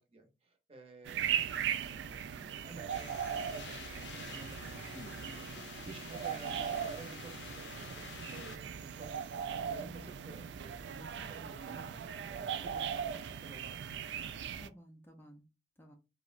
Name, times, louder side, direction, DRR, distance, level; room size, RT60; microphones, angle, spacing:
voice 1, 0.1-11.9 12.3-14.4, right 3 dB, 35° right, 0.7 m, -53 dB
sound 1, 1.0-14.7, right 8 dB, 80° right, 0.3 m, -39 dB
sound 2, 2.9-8.6, left 6 dB, 85° left, 0.5 m, -49 dB
voice 2, 5.5-6.0 9.8-10.2 14.6-15.4 15.8-16.0, equal, 10° left, 0.4 m, -54 dB
3.6 x 2.0 x 2.4 m
head